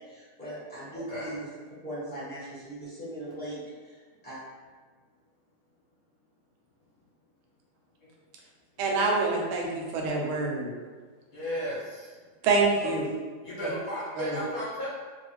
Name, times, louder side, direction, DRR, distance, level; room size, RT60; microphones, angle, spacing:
voice 1, 0.0-1.5 1.8-3.9 4.2-4.4, right 1 dB, 10° left, -10 dB, 0.5 m, -39 dB
voice 2, 8.8-10.7 12.4-13.0 14.2-14.4, right 3 dB, 85° right, 0 dB, 1.5 m, -26 dB
voice 3, 11.3-12.1 13.4-14.9, equal, 55° left, -8 dB, 1.0 m, -34 dB
3.1 x 2.4 x 3.1 m, 1.5 s
omnidirectional pair, 2.2 m